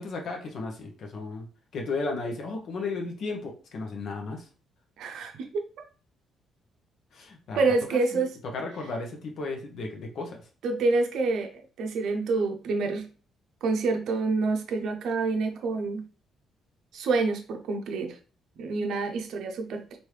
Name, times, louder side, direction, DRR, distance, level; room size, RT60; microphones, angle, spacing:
voice 1, 0.0-1.4 1.7-4.4 7.1-7.6 8.1-8.2 8.5-10.4, left 3 dB, 65° left, 2 dB, 0.8 m, -34 dB
voice 2, 5.0-5.7 7.5-8.4 10.6-11.5 11.8-13.1 13.6-16.0 16.9-18.1 18.6-20.0, right 3 dB, 75° right, 4 dB, 0.5 m, -27 dB
3.1 x 2.6 x 3.2 m, 0.38 s
cardioid pair, 95°, 0 cm